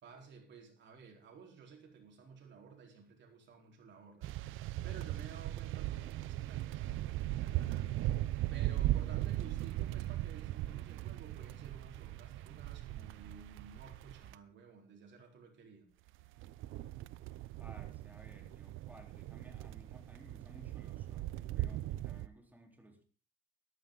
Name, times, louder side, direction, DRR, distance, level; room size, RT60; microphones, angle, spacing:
voice 1, 0.0-4.5 4.8-8.1 8.5-15.9, right 5 dB, 65° right, 2 dB, 4.0 m, -54 dB
sound 1, 4.2-14.4 16.1-22.3, right 15 dB, 90° right, 0.6 m, -38 dB
voice 2, 17.6-23.0, right 1 dB, 10° right, 3 dB, 3.5 m, -58 dB
14.0 x 11.5 x 3.8 m, 0.38 s
cardioid pair, 90°, 20 cm